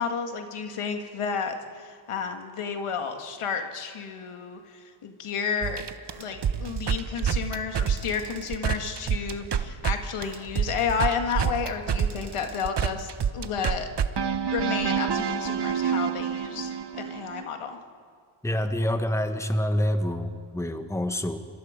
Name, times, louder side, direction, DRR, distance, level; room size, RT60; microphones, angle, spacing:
voice 1, 0.0-5.8 6.2-13.9 14.5-17.8, left 6 dB, 85° left, 5 dB, 2.0 m, -31 dB
sound 1, 5.6-9.9 10.2-17.4, right 7 dB, 55° right, 1.1 m, -27 dB
voice 2, 18.4-21.4, equal, 5° left, 7 dB, 1.4 m, -27 dB
26.0 x 22.5 x 5.2 m, 2.1 s
cardioid pair, 80°, 50 cm